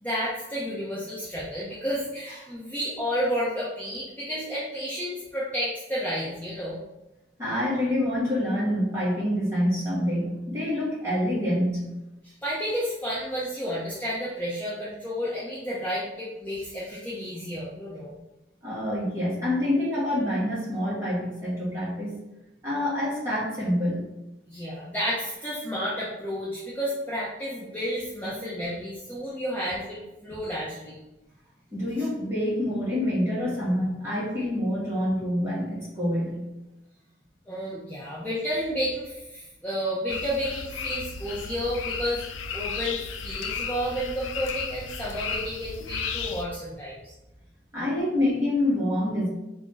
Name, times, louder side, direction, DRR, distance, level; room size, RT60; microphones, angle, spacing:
voice 1, 0.0-6.8 12.2-18.2 24.5-31.0 32.0-32.1 37.5-42.3 42.5-47.1, equal, 10° left, -9 dB, 0.6 m, -31 dB
voice 2, 7.4-11.8 18.6-22.1 22.6-24.0 31.7-36.4 47.7-49.3, left 1 dB, 15° right, -9 dB, 1.5 m, -26 dB
sound 1, 40.1-46.4, left 6 dB, 80° left, 0.3 m, -34 dB
3.5 x 2.5 x 3.8 m, 0.98 s
head